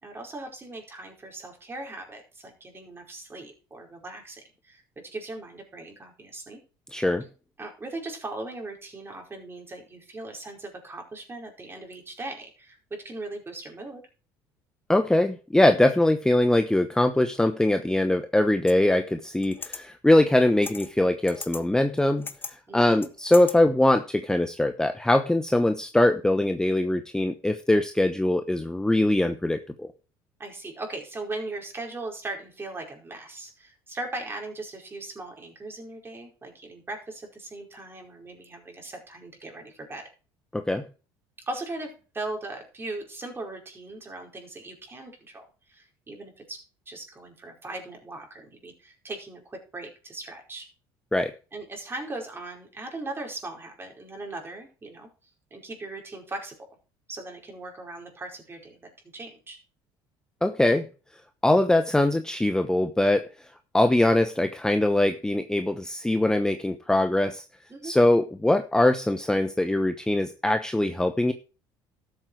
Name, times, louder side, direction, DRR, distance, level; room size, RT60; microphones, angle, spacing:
voice 1, 0.0-4.8 5.1-6.6 7.6-14.0 22.7-23.1 30.4-40.1 41.5-50.7 51.5-55.1 55.5-56.6 57.1-59.6 67.7-67.9, right 2 dB, 25° right, 2 dB, 4.7 m, -39 dB
voice 2, 6.9-7.2 14.9-22.3 22.7-29.9 40.5-40.8 51.1-51.3 60.4-60.9 61.4-63.2 63.7-67.4 67.8-71.3, left 1 dB, 5° left, 8 dB, 0.9 m, -22 dB
sound 1, 18.7-18.8 19.4-19.8 20.6-20.9 21.3-21.6 22.0-22.5 23.0-23.5, left 4 dB, 20° left, 1.5 m, -37 dB
13.0 x 7.8 x 4.7 m, 0.35 s
supercardioid pair, 95°, 10 cm